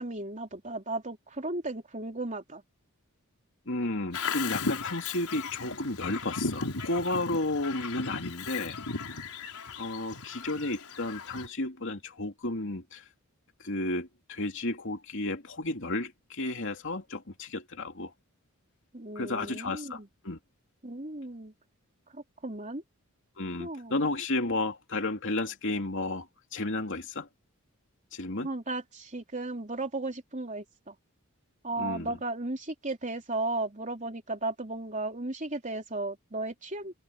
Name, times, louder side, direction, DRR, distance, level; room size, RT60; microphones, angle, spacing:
voice 1, 0.0-2.6 18.9-20.1 20.8-21.5 22.1-22.8 23.6-23.9 28.4-30.9 31.6-37.0, right 2 dB, 35° right, 3.4 m, -35 dB
voice 2, 3.7-8.8 9.8-13.1 13.6-18.1 19.1-20.0 20.2-20.4 23.4-27.3 28.1-28.5 31.8-32.1, left 2 dB, 60° left, 2.9 m, -32 dB
Bird vocalization bird call bird song, 4.1-11.5, left 4 dB, 85° left, 5.0 m, -36 dB
open air
head